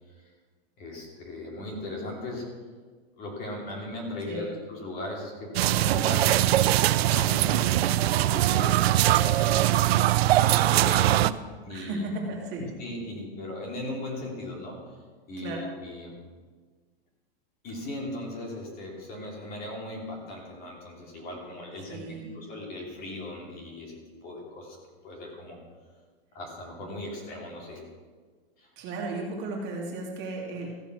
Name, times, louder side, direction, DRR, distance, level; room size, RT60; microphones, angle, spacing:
voice 1, 0.8-2.5 3.2-6.5 6.8-10.1 10.7-11.3 11.6-12.0 12.6-15.0 15.3-16.1 17.6-24.8 25.0-25.6 26.3-27.8 28.6-28.7, left 1 dB, 30° left, -1 dB, 2.7 m, -38 dB
voice 2, 4.3-4.6 11.7-12.7 15.4-15.6 21.9-22.4 28.8-30.7, right 2 dB, 35° right, -1 dB, 2.4 m, -35 dB
sound 1, 5.5-11.3, right 14 dB, 90° right, 0.5 m, -22 dB
15.0 x 7.0 x 6.1 m, 1.5 s
supercardioid pair, 160°, 30 cm